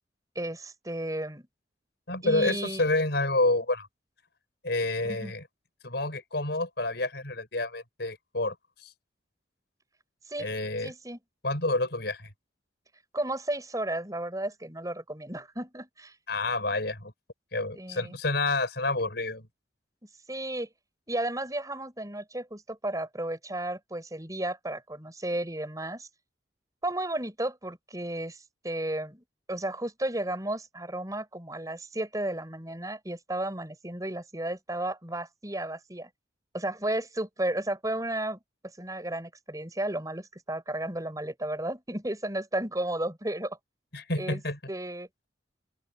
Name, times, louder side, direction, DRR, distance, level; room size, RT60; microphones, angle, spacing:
voice 1, 0.4-1.4 2.2-2.9 5.0-5.3 10.3-10.5 10.8-11.2 13.1-16.1 17.8-18.2 20.3-20.7 21.1-26.1 26.8-28.4 28.6-36.1 36.5-38.4 38.8-43.6 44.2-44.4 44.7-45.1, right 1 dB, 20° right, 7.1 m, -33 dB
voice 2, 2.1-3.9 4.6-5.4 5.8-8.5 8.8-8.9 10.4-10.9 11.4-12.3 16.3-17.1 17.5-19.5 43.9-44.6, left 2 dB, 60° left, 6.6 m, -28 dB
open air
head